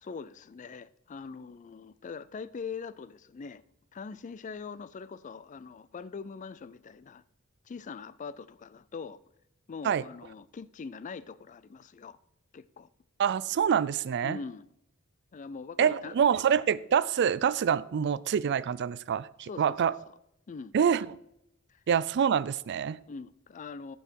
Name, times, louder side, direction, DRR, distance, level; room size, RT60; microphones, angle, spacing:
voice 1, 0.0-3.6 3.9-7.2 7.7-9.2 9.7-12.2 12.5-12.9 14.2-14.7 15.3-16.1 19.5-19.8 20.5-20.8 21.7-21.8 23.1-24.0, left 5 dB, 35° left, 0.3 m, -42 dB
voice 2, 13.2-14.4 15.8-19.9 20.7-21.2 21.9-23.0, right 7 dB, 55° right, 0.3 m, -26 dB
14.5 x 5.5 x 4.5 m
head